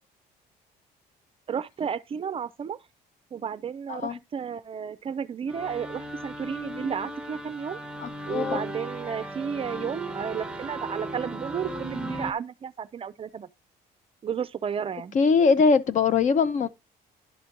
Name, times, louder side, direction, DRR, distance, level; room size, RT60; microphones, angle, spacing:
voice 1, 1.5-2.8 3.3-7.8 8.3-13.5 14.2-15.2, right 7 dB, 35° right, 0.4 m, -32 dB
sound 1, 5.5-12.3, right 1 dB, 5° right, 0.8 m, -36 dB
voice 2, 8.0-8.6 15.1-16.7, left 5 dB, 45° left, 0.7 m, -22 dB
11.0 x 5.1 x 2.9 m
cardioid pair, 110°, 17 cm